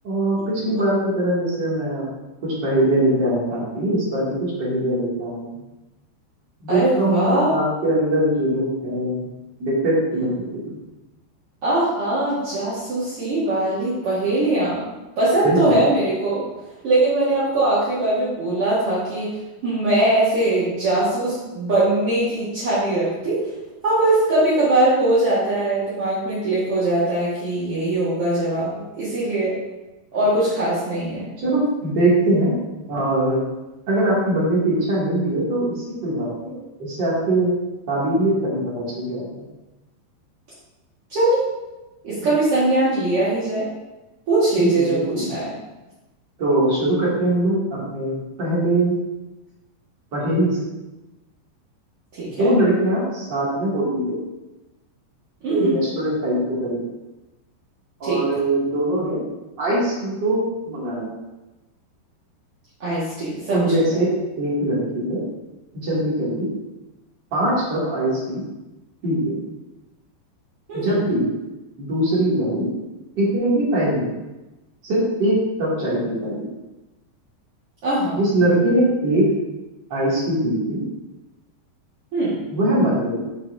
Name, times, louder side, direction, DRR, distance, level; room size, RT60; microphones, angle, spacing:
voice 1, 0.0-0.4 0.6-2.0 2.4-5.6 6.6-9.3 9.6-10.8 15.4-15.8 31.4-32.5 32.9-33.4 33.9-36.6 36.9-37.6 37.9-39.4 44.6-45.3 46.4-49.0 50.1-50.6 52.4-54.2 55.5-56.8 58.0-59.2 59.6-61.1 63.5-64.1 64.4-65.2 65.8-66.5 67.3-68.4 69.0-69.4 70.8-71.3 71.8-72.7 73.2-74.1 74.8-76.4 78.2-79.2 79.9-80.8 82.5-83.2, right 1 dB, 35° right, -7 dB, 2.0 m, -21 dB
voice 2, 6.7-7.5 11.6-14.9 15.2-16.4 16.8-19.4 19.6-23.5 23.8-29.5 30.1-31.3 41.1-41.5 42.0-43.6 44.3-45.5 52.1-52.5 55.4-55.8 58.0-58.2 62.8-64.0 70.7-71.0 77.8-78.2 82.1-82.3, right 2 dB, 60° right, -10 dB, 1.5 m, -21 dB
12.0 x 4.6 x 2.7 m, 1.1 s
omnidirectional pair, 5.3 m